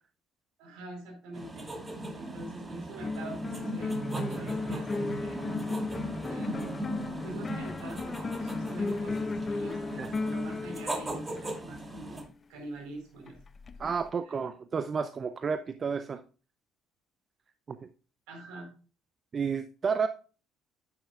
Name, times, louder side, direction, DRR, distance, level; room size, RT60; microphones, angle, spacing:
voice 1, 0.6-5.4 6.3-13.4 13.8-13.9 14.2-14.3 18.3-18.7, right 2 dB, 65° right, 1 dB, 4.2 m, -45 dB
sound 1, 1.3-12.2, right 1 dB, 20° right, 2.3 m, -38 dB
sound 2, 3.0-12.0 13.3-14.1, left 3 dB, 35° left, 0.7 m, -36 dB
voice 2, 13.8-16.2 17.7-17.8 19.3-20.1, right 5 dB, 40° right, 11 dB, 0.5 m, -31 dB
10.0 x 8.8 x 2.4 m, 0.37 s
figure-of-eight pair, 50°, 0 cm